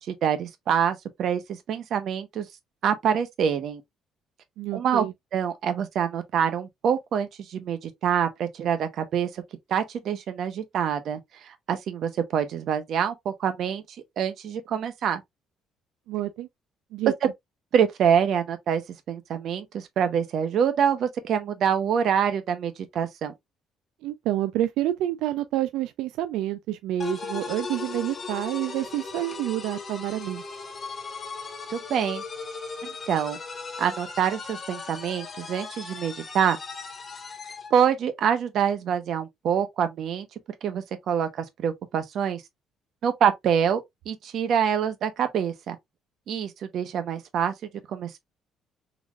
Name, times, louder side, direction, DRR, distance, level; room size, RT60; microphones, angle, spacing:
voice 1, 0.1-1.4 1.7-2.5 2.8-3.8 4.7-5.0 5.3-9.4 9.7-13.8 14.2-15.2 17.7-18.8 19.1-23.3 31.7-32.2 33.1-33.4 33.8-36.6 37.7-40.3 40.6-42.4 43.0-45.8 46.3-47.5 47.9-48.2, right 8 dB, 55° right, 0.8 m, -26 dB
voice 2, 4.6-5.1 16.1-16.5 16.9-17.1 24.0-30.6, right 13 dB, 90° right, 0.3 m, -28 dB
sound 1, 27.0-37.7, left 4 dB, 25° left, 0.7 m, -37 dB
4.0 x 3.1 x 2.3 m
cardioid pair, 150°, 0 cm